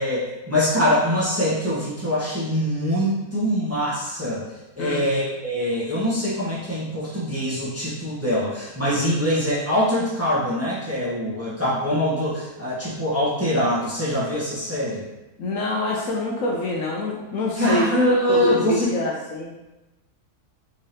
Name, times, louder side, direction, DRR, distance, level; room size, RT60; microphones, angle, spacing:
voice 1, 0.0-4.4 4.8-15.1 17.6-18.9, equal, 10° right, -9 dB, 0.8 m, -23 dB
voice 2, 15.4-17.9 18.3-19.5, left 1 dB, 70° left, -2 dB, 0.9 m, -26 dB
3.6 x 3.2 x 2.7 m, 1.0 s
omnidirectional pair, 1.6 m